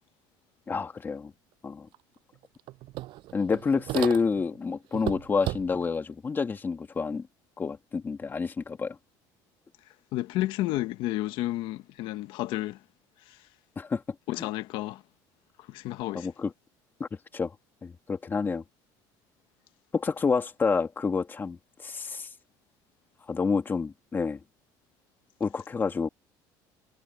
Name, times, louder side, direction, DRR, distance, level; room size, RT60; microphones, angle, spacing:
voice 1, 0.7-1.3 1.6-1.9 3.3-7.3 7.6-9.0 13.8-14.0 14.4-14.5 16.1-16.5 17.0-17.1 17.3-17.5 17.8-18.6 19.9-22.3 23.3-24.4 25.4-26.1, left 5 dB, 25° left, 2.4 m, -28 dB
sound 1, 1.9-2.0 2.3-4.6 4.9-6.0, right 17 dB, 65° right, 7.2 m, -35 dB
voice 2, 10.1-12.8 13.3-13.4 14.3-15.0 15.7-16.3, left 16 dB, 70° left, 1.6 m, -31 dB
cardioid pair, 130°, 9 cm